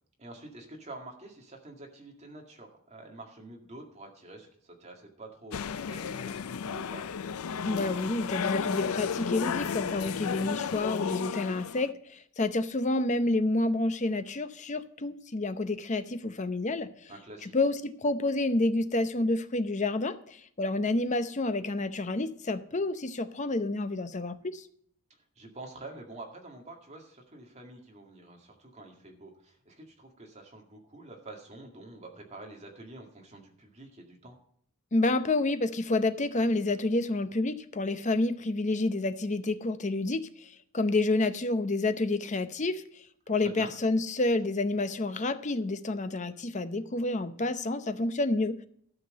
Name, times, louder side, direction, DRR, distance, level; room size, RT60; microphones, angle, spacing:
voice 1, 0.2-7.1 17.1-17.5 25.4-34.4 43.4-43.7, right 2 dB, 30° right, 2 dB, 2.1 m, -47 dB
sound 1, 5.5-11.9, left 6 dB, 90° left, 0.5 m, -33 dB
voice 2, 7.6-17.1 17.4-24.7 34.9-42.8 43.3-48.6, left 2 dB, 35° left, 11 dB, 0.7 m, -29 dB
12.5 x 6.0 x 6.5 m, 0.65 s
head